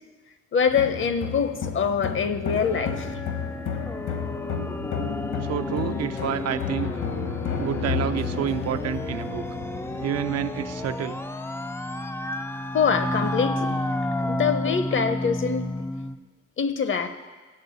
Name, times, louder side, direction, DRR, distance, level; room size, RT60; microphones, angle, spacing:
voice 1, 0.5-3.2 12.7-13.8 14.2-15.7 16.6-17.1, left 6 dB, 40° left, 10 dB, 0.7 m, -24 dB
sound 1, 0.7-11.0, left 6 dB, 70° left, 1.3 m, -32 dB
sound 2, 2.5-16.2, left 1 dB, 10° left, 0.3 m, -31 dB
voice 2, 5.4-6.9 7.6-9.4 10.0-11.2, right 10 dB, 60° right, 10 dB, 0.5 m, -29 dB
7.5 x 6.7 x 8.1 m, 1.3 s
cardioid pair, 90°, 30 cm